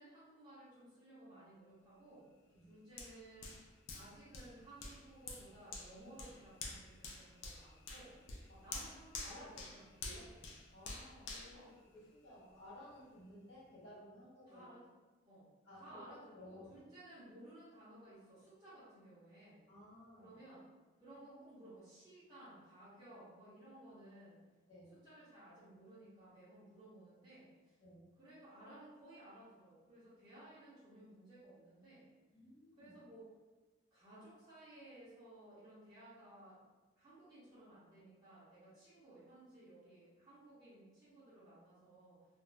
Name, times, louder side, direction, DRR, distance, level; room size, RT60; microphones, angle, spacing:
voice 1, 0.0-2.2 2.7-3.6 3.9-8.2 8.6-10.3 11.5-11.7 14.5-14.8 15.2-15.5 15.8-19.6 20.2-20.6 21.0-24.4 25.0-27.7 28.2-32.1 32.8-33.3 33.9-36.6 37.0-42.2, right 1 dB, 20° right, -15 dB, 0.9 m, -57 dB
Hands, 3.0-12.5 13.0-13.1, left 3 dB, 80° left, 0.4 m, -49 dB
voice 2, 9.2-9.8 10.0-10.3 10.7-14.7 15.6-16.9 19.7-20.4 21.1-21.2 24.7-24.9 27.8-28.0 32.3-32.9, left 1 dB, 60° left, -11 dB, 1.2 m, -56 dB
2.4 x 2.0 x 3.2 m, 1.2 s
head